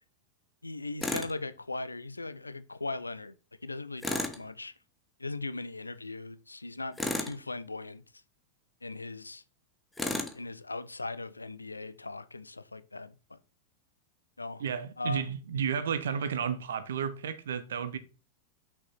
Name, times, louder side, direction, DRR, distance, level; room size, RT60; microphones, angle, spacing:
voice 1, 0.6-3.3 3.6-4.7 5.2-8.0 8.8-9.4 10.3-13.4 14.4-14.6 15.0-15.2, left 3 dB, 80° left, 0.5 m, -39 dB
Tools, 1.0-1.3 4.0-4.4 7.0-7.4 10.0-10.4, left 2 dB, 10° left, 1.2 m, -32 dB
voice 2, 14.6-18.0, right 7 dB, 65° right, 1.0 m, -32 dB
6.5 x 5.9 x 4.4 m
figure-of-eight pair, 90°, 0 cm